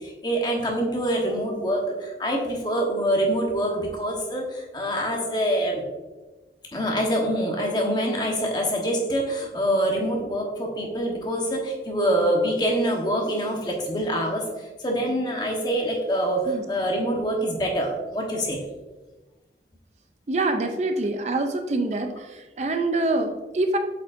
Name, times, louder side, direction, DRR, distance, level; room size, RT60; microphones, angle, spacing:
voice 1, 0.0-5.8 6.7-14.5 14.8-18.6, equal, 25° left, 0 dB, 1.1 m, -25 dB
voice 2, 20.3-22.1 22.6-23.8, right 2 dB, 40° right, 6 dB, 0.5 m, -25 dB
8.0 x 5.1 x 2.6 m, 1.2 s
head